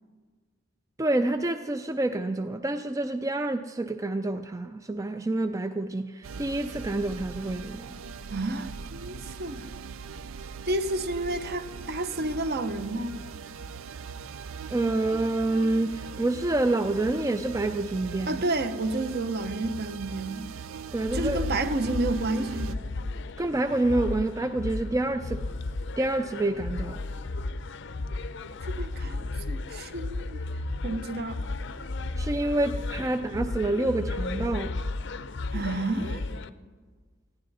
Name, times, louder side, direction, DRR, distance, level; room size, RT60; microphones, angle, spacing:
voice 1, 1.0-7.9 14.7-18.4 20.9-21.4 23.4-25.4 26.0-27.0 32.2-34.7, right 2 dB, 15° right, 0.4 m, -27 dB
sound 1, 6.2-22.8, right 5 dB, 80° right, 0.5 m, -40 dB
voice 2, 8.3-9.7 10.7-13.2 18.3-20.5 21.1-22.8 28.7-30.4 30.8-31.4 35.5-36.3, right 2 dB, 50° right, 0.9 m, -30 dB
sound 2, 21.1-36.5, left 2 dB, 60° left, 0.6 m, -34 dB
19.5 x 15.5 x 4.1 m
head